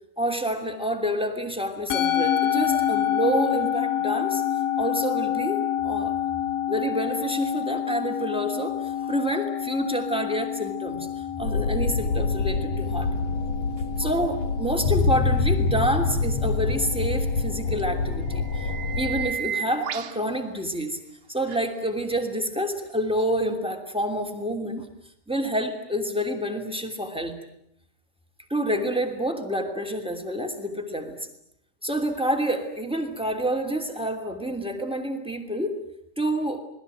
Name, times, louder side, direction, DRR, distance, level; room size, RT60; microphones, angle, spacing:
voice 1, 0.2-4.4 4.8-6.1 6.7-13.1 14.0-21.0 21.3-24.9 25.3-27.4 28.5-31.1 31.8-35.8 36.1-36.6, equal, 5° right, 6 dB, 1.1 m, -28 dB
Musical instrument, 1.9-20.4, left 10 dB, 70° left, 3.8 m, -29 dB
sound 1, 11.4-19.3, left 3 dB, 50° left, 2.1 m, -26 dB
sound 2, 13.8-13.9 17.8-17.9 18.3-20.2 21.5-21.6 23.2-23.3, right 8 dB, 65° right, 2.4 m, -32 dB
28.5 x 21.0 x 9.2 m, 0.74 s
omnidirectional pair, 5.5 m